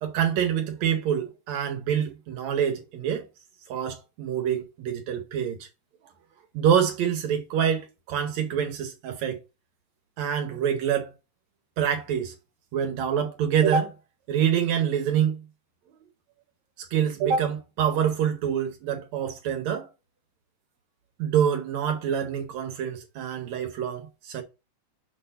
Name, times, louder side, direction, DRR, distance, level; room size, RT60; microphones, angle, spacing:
voice 1, 0.0-3.3 3.7-5.7 6.5-9.4 10.2-11.1 11.8-12.3 12.7-13.9 14.3-15.4 16.8-19.9 21.2-24.4, right 8 dB, 75° right, 2.0 m, -26 dB
6.1 x 4.5 x 5.6 m
omnidirectional pair, 3.4 m